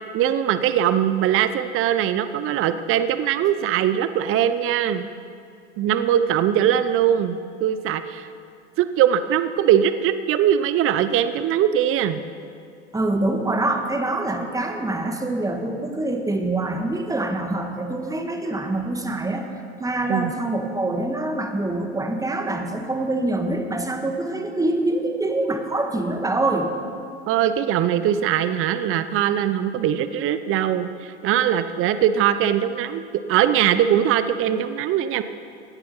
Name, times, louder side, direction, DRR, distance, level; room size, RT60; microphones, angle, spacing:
voice 1, 0.1-5.1 5.8-8.3 8.8-12.2 20.1-20.3 27.3-33.0 33.3-35.2, right 10 dB, 40° right, 11 dB, 0.7 m, -21 dB
voice 2, 12.9-19.5 19.8-26.7, right 2 dB, 10° right, 4 dB, 1.6 m, -25 dB
16.5 x 10.5 x 5.6 m, 2.4 s
hypercardioid pair, 90°, 34 cm